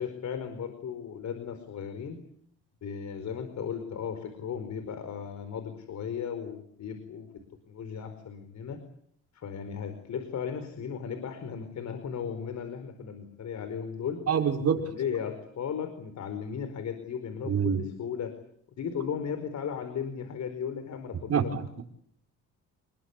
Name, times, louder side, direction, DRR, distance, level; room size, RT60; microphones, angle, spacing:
voice 1, 0.0-2.2 2.8-7.3 7.7-8.8 9.3-14.2 14.7-18.3 18.8-21.5, left 7 dB, 65° left, 9 dB, 4.8 m, -36 dB
voice 2, 14.3-14.8 17.5-17.8 21.3-21.8, right 7 dB, 55° right, 3 dB, 5.4 m, -26 dB
29.0 x 21.5 x 8.4 m, 0.66 s
cardioid pair, 90°, 30 cm